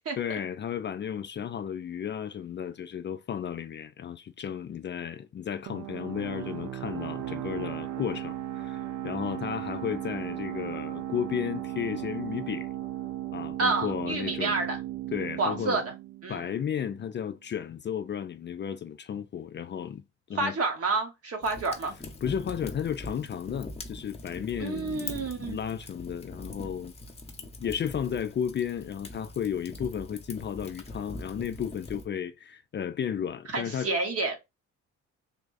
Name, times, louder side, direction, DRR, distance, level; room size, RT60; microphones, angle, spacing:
voice 1, 0.2-12.7 13.3-14.6 15.1-15.8 16.3-20.0 20.3-20.5 22.2-26.9 27.6-33.9, left 8 dB, 40° left, 0.4 m, -33 dB
sound 1, 5.7-17.0, right 13 dB, 70° right, 0.5 m, -36 dB
voice 2, 13.6-14.8 15.4-15.8 16.2-16.5 20.3-21.9 24.6-25.6 33.5-34.4, right 3 dB, 50° right, 1.4 m, -29 dB
Fire, 21.4-32.1, left 2 dB, 20° left, 0.9 m, -43 dB
3.5 x 2.3 x 3.8 m
cardioid pair, 90°, 30 cm